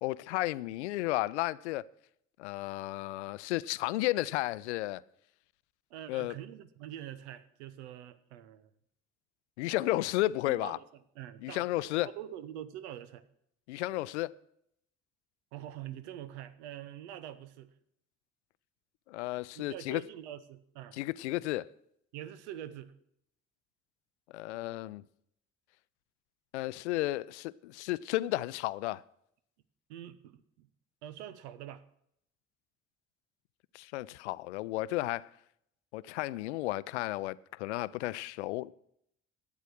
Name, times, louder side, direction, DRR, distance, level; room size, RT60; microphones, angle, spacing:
voice 1, 0.0-1.8 2.4-5.0 6.1-6.3 9.6-10.8 11.4-12.1 13.7-14.3 19.1-20.0 20.9-21.7 24.3-25.0 26.5-29.0 33.7-35.3 35.9-38.7, left 17 dB, 70° left, 0.5 m, -33 dB
voice 2, 5.9-8.7 10.5-10.9 11.1-13.2 15.5-17.7 19.6-21.0 22.1-22.9 29.9-30.7 31.0-31.8, right 11 dB, 70° right, 0.8 m, -45 dB
12.5 x 9.0 x 6.3 m
figure-of-eight pair, 45°, 35 cm